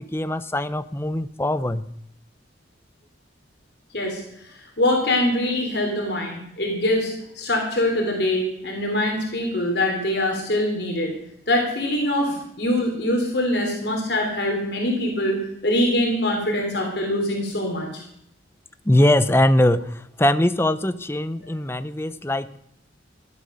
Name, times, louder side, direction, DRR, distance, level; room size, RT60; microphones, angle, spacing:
voice 1, 0.0-1.9 18.8-22.6, left 1 dB, 15° left, 13 dB, 0.6 m, -21 dB
voice 2, 3.9-11.1 11.5-17.9 21.4-21.5, left 1 dB, 60° left, 1 dB, 3.4 m, -24 dB
15.0 x 11.5 x 6.7 m, 0.76 s
head